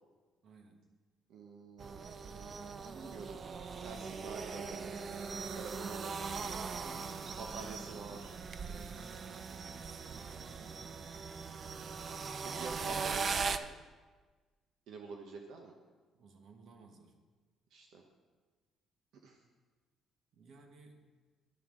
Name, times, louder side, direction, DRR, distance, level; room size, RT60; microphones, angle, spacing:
voice 1, 0.4-0.8 6.4-8.3 8.6-11.2 16.1-17.1 20.3-21.0, right 3 dB, 55° right, 4 dB, 1.3 m, -56 dB
voice 2, 1.3-2.1 2.9-3.3 3.8-4.9 5.5-6.6 7.4-8.3 12.4-13.7 14.9-15.7 17.7-18.0 19.2-19.4, right 4 dB, 70° right, 2 dB, 1.1 m, -47 dB
sound 1, 1.8-13.6, right 5 dB, 35° right, 0.4 m, -40 dB
11.5 x 11.0 x 3.8 m, 1.4 s
cardioid pair, 145°, 0 cm